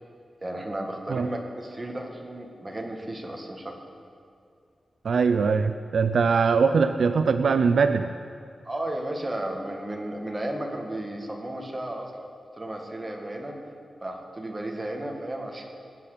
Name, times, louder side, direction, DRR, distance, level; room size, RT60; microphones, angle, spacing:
voice 1, 0.4-3.7 8.6-12.3 12.6-13.6 14.0-15.7, right 1 dB, 15° right, 1 dB, 1.7 m, -34 dB
voice 2, 5.0-8.1, right 5 dB, 70° right, 9 dB, 0.4 m, -22 dB
20.5 x 8.4 x 6.7 m, 2.4 s
wide cardioid pair, 160°, 0 cm